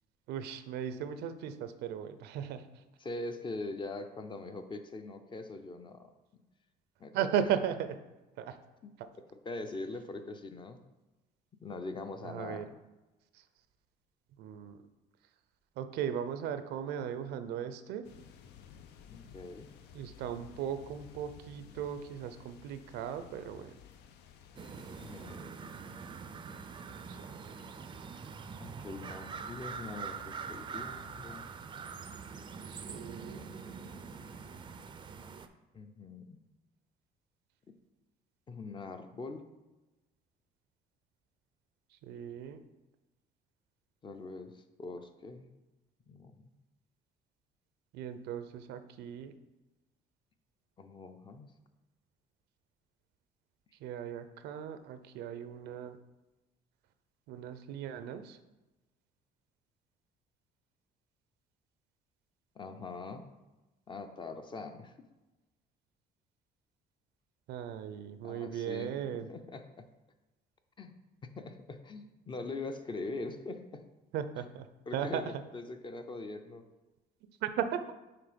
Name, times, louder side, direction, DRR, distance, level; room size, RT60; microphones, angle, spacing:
voice 1, 0.3-2.8 7.1-7.9 8.4-8.6 9.0-9.1 12.2-12.7 13.3-13.4 14.4-14.8 15.8-18.1 19.9-23.8 27.1-27.6 32.7-33.5 42.0-42.6 47.9-49.3 53.8-56.0 57.3-58.4 67.5-69.3 74.1-74.7 74.9-75.2 77.4-77.8, right 9 dB, 80° right, 11 dB, 0.5 m, -37 dB
voice 2, 3.0-6.1 7.0-7.3 8.8-8.9 9.3-10.8 11.6-12.7 19.1-19.7 25.0-25.5 28.6-31.5 35.7-36.4 38.5-39.4 44.0-45.5 46.1-46.5 50.8-51.5 62.6-63.3 63.9-64.9 68.2-69.9 70.8-70.9 71.2-73.8 74.9-76.6, left 3 dB, 30° left, 7 dB, 0.6 m, -42 dB
sound 1, 18.0-25.4, left 8 dB, 80° left, 0.5 m, -55 dB
sound 2, 24.6-35.5, right 5 dB, 30° right, 0.4 m, -44 dB
5.9 x 3.8 x 5.1 m, 1.1 s
cardioid pair, 110°, 17 cm